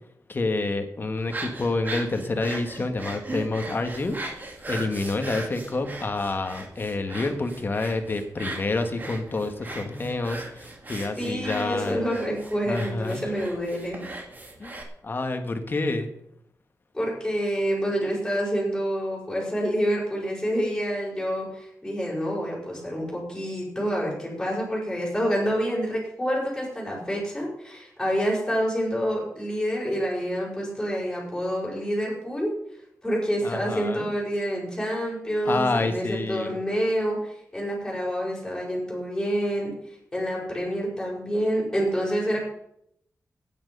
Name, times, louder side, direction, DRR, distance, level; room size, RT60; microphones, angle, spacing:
voice 1, 0.3-12.0 12.7-13.3 14.6-16.1 33.4-34.1 35.4-36.6, left 2 dB, 35° left, 6 dB, 1.6 m, -28 dB
sound 1, 1.2-14.8, right 2 dB, 30° right, 2.2 m, -38 dB
voice 2, 11.2-14.0 16.9-32.5 33.0-42.4, equal, 5° left, -6 dB, 6.1 m, -27 dB
16.0 x 9.2 x 5.5 m, 0.74 s
wide cardioid pair, 170°, 6 cm